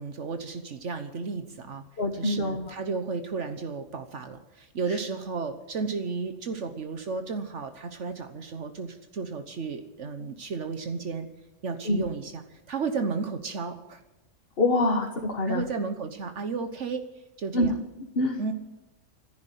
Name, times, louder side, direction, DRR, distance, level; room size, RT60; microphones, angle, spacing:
voice 1, 0.0-1.8 2.2-11.3 11.6-14.0 15.5-17.0 17.4-17.8 18.4-18.5, right 4 dB, 70° right, 8 dB, 1.4 m, -33 dB
voice 2, 2.0-2.8 4.9-5.0 11.8-12.0 14.6-15.6 17.5-17.8 18.1-18.4, left 2 dB, 50° left, 3 dB, 1.7 m, -25 dB
14.5 x 11.0 x 9.2 m, 1.1 s
omnidirectional pair, 1.3 m